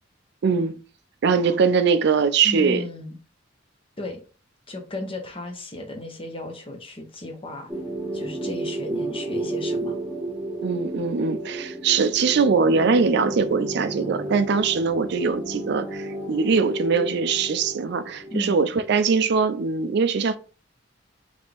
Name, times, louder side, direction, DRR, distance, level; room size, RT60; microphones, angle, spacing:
voice 1, 0.4-0.8 1.2-2.8 10.6-20.4, right 5 dB, 60° right, 0.4 m, -22 dB
voice 2, 2.4-3.2 4.0-4.2 4.7-7.7 8.1-10.0 18.3-18.6, left 1 dB, 30° left, 0.9 m, -35 dB
sound 1, 7.7-19.6, right 1 dB, 5° right, 1.3 m, -32 dB
4.2 x 3.4 x 3.4 m
head